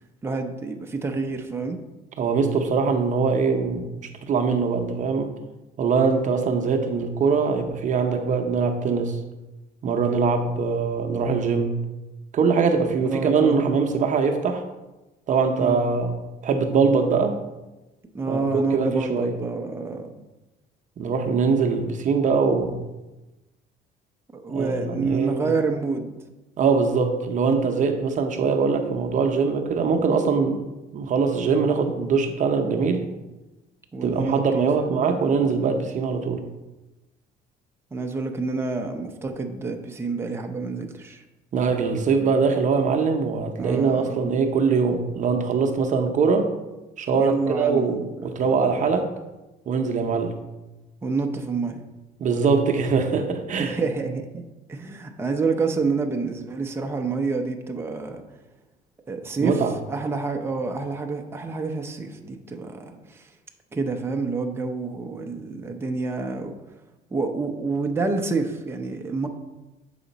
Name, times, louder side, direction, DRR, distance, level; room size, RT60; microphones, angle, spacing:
voice 1, 0.2-1.8 13.0-13.6 15.6-15.8 18.1-20.3 24.3-26.1 33.9-35.8 37.9-41.2 43.6-44.4 47.2-48.9 51.0-51.8 53.6-54.4 54.7-58.2 59.1-63.3 63.7-66.5 67.1-69.3, right 4 dB, 15° right, 3 dB, 0.7 m, -28 dB
voice 2, 2.2-5.3 5.8-9.2 9.8-11.8 12.3-14.6 15.3-16.1 16.4-17.4 18.3-19.4 21.0-22.8 24.5-25.5 26.6-30.6 30.9-33.1 34.0-36.4 41.5-46.5 47.0-49.1 49.7-50.3 52.2-53.8 59.4-59.8, right 5 dB, 50° right, 5 dB, 0.8 m, -22 dB
7.6 x 5.0 x 4.1 m, 1.0 s
cardioid pair, 110°, 17 cm